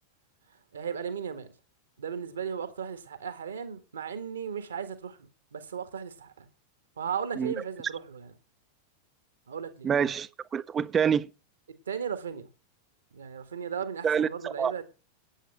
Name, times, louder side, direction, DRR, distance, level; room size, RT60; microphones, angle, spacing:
voice 1, 0.7-1.5 2.0-5.2 5.5-6.5 7.0-8.3 9.5-9.9 11.9-12.5 13.1-14.8, right 7 dB, 70° right, 1.6 m, -36 dB
voice 2, 9.8-11.3 14.0-14.7, right 7 dB, 20° right, 0.6 m, -27 dB
9.0 x 8.7 x 5.9 m
figure-of-eight pair, 90°, 0 cm